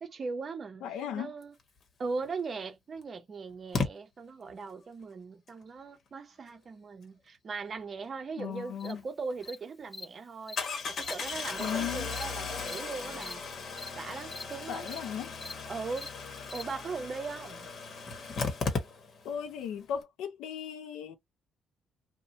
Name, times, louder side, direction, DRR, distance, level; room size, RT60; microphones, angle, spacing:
voice 1, 0.0-1.5 2.0-13.4 14.0-14.9 15.7-16.1 16.5-17.6, right 4 dB, 45° right, 0.7 m, -39 dB
voice 2, 0.8-1.3 8.4-9.0 11.6-12.1 14.7-15.3 19.2-21.2, left 8 dB, 90° left, 0.5 m, -36 dB
Engine starting, 2.2-2.3 3.7-3.9 9.0-9.1 9.4-9.5 10.6-19.4 19.7-19.8 20.0-20.1, left 4 dB, 55° left, 0.9 m, -36 dB
Cricket, 8.8-8.9 9.4-9.5 9.9-10.0 10.5-10.6 11.0-11.1 11.6-11.7 12.1-12.2 12.7-12.8 13.2-13.3 13.8-13.9 14.3-14.4 14.9-15.0 15.4-15.5 16.0-16.1 16.5-16.6, left 2 dB, 15° left, 0.4 m, -42 dB
2.7 x 2.1 x 2.8 m
cardioid pair, 90°, 0 cm